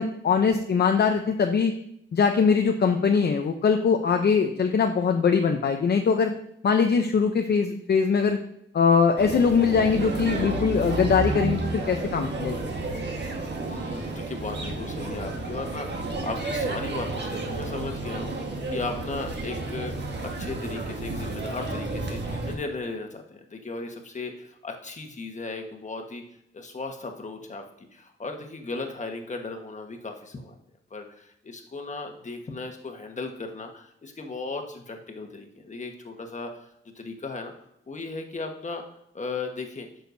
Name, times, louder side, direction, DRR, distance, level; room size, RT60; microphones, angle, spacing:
voice 1, 0.0-1.7 2.1-6.3 6.6-8.4 8.7-12.6, left 5 dB, 55° left, 4 dB, 0.7 m, -22 dB
Tbilisi Sea, 9.2-22.6, right 2 dB, 55° right, 1.5 m, -31 dB
voice 2, 13.6-26.2 26.5-27.6 27.9-30.6 30.9-37.5 37.9-38.8 39.1-39.9, left 3 dB, 35° left, 4 dB, 1.3 m, -36 dB
9.3 x 6.5 x 2.7 m, 0.77 s
cardioid pair, 95°, 21 cm